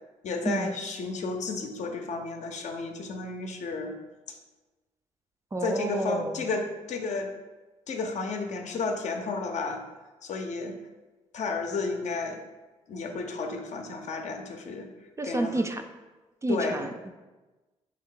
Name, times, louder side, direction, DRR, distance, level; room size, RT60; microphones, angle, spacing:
voice 1, 0.2-3.9 4.3-4.4 5.6-7.3 7.9-9.8 10.2-10.8 11.3-12.4 12.9-14.9 15.2-15.5 16.5-16.8, left 3 dB, 65° left, 4 dB, 0.5 m, -32 dB
voice 2, 5.5-6.4 15.2-15.8 16.4-17.1, right 2 dB, 20° right, 6 dB, 0.3 m, -30 dB
3.5 x 2.7 x 3.7 m, 1.2 s
cardioid pair, 65°, 13 cm